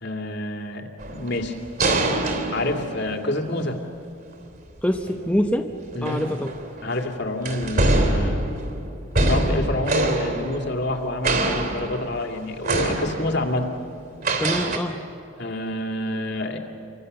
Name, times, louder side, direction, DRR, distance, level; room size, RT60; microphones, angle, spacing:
voice 1, 0.0-1.5 2.5-3.8 5.9-6.3 6.8-8.4 9.3-13.7 15.4-16.6, left 1 dB, 55° left, 3 dB, 2.6 m, -28 dB
sound 1, 1.0-3.5 5.0-5.2 5.9-6.9 7.5-11.0 11.2-12.3 12.6-13.6 14.2-14.8, right 2 dB, 45° right, 3.4 m, -24 dB
voice 2, 4.8-6.5 14.4-15.0, equal, 5° left, 3 dB, 0.9 m, -25 dB
29.5 x 25.0 x 6.8 m, 2.6 s
head